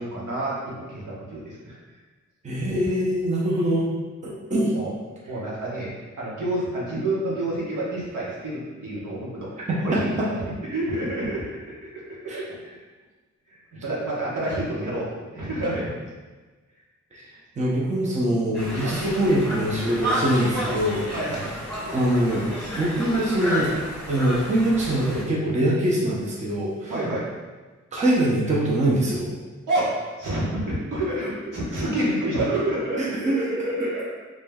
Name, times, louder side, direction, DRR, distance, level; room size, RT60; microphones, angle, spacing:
voice 1, 0.0-1.8 2.6-2.9 4.7-4.9 5.3-9.5 9.8-12.8 13.5-15.9 18.8-19.0 21.1-21.5 26.9-27.3 29.7-29.9 30.2-34.0, right 1 dB, 85° right, -6 dB, 1.3 m, -29 dB
voice 2, 2.4-3.9 4.2-4.7 9.7-10.3 12.3-12.4 17.1-17.2 17.6-21.0 21.9-23.7 24.1-26.9 27.9-29.3 33.0-33.4, right 1 dB, 25° right, -5 dB, 0.6 m, -23 dB
Conversation, 18.5-25.2, equal, 5° left, 1.4 m, -31 dB
5.0 x 3.1 x 2.3 m, 1.3 s
wide cardioid pair, 180°, 30 cm